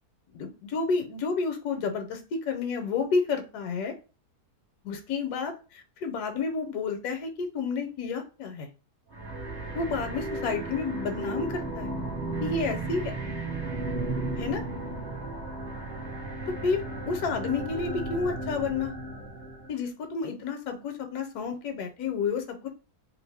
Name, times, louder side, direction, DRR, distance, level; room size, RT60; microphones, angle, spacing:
voice 1, 0.3-3.9 4.8-8.7 9.7-11.9 12.4-13.1 14.4-14.6 16.6-18.9 19.7-22.7, left 4 dB, 75° left, 5 dB, 1.1 m, -30 dB
sound 1, 9.1-19.7, right 2 dB, 45° right, 0.7 m, -34 dB
2.8 x 2.5 x 3.3 m, 0.33 s
omnidirectional pair, 1.8 m